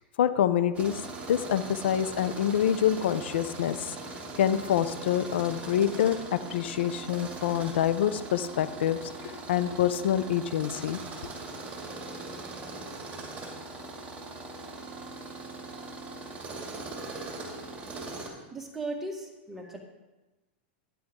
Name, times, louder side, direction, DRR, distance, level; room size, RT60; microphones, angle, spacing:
voice 1, 0.2-1.0 1.3-3.9 4.4-11.0, left 10 dB, 80° left, 13 dB, 0.6 m, -26 dB
Tools, 0.7-18.3, right 3 dB, 20° right, 2.4 m, -41 dB
voice 2, 16.9-17.3 18.5-19.8, right 2 dB, 5° right, 0 dB, 1.8 m, -38 dB
12.0 x 10.0 x 3.7 m, 1.1 s
supercardioid pair, 140°, 6 cm